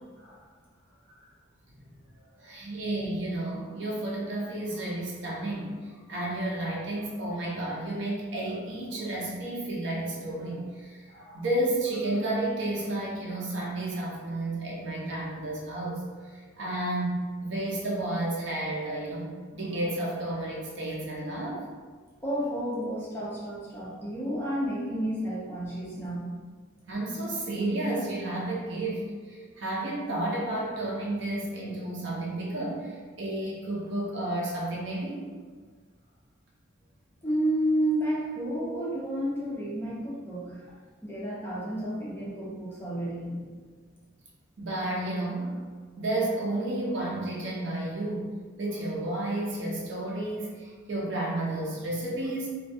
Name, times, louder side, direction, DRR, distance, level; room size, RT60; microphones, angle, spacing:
voice 1, 2.4-21.6 26.9-35.4 44.6-45.6 46.0-52.5, right 1 dB, 60° right, -4 dB, 0.6 m, -32 dB
voice 2, 22.2-26.3 37.2-40.7 41.0-43.5, right 1 dB, 10° left, -8 dB, 0.5 m, -31 dB
2.3 x 2.2 x 2.6 m, 1.5 s
head